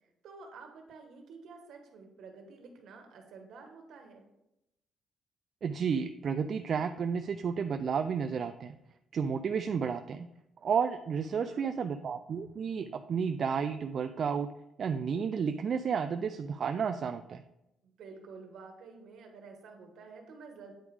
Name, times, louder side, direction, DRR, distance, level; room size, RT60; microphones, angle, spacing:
voice 1, 0.2-4.3 11.3-11.7 17.8-20.7, right 4 dB, 75° right, 4 dB, 1.4 m, -50 dB
voice 2, 5.6-8.8 9.1-10.3 10.6-14.5 14.8-17.4, right 6 dB, 55° right, 8 dB, 0.4 m, -32 dB
8.8 x 4.8 x 3.5 m, 0.87 s
cardioid pair, 90°, 0 cm